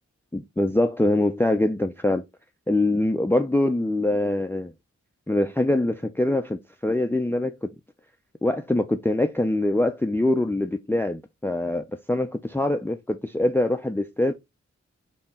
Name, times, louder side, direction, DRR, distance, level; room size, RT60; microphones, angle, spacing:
voice 1, 0.3-2.2 2.7-4.7 5.3-7.7 8.4-14.3, left 1 dB, 10° left, 0.5 m, -24 dB
4.3 x 3.0 x 3.6 m
cardioid pair, 45°, 29 cm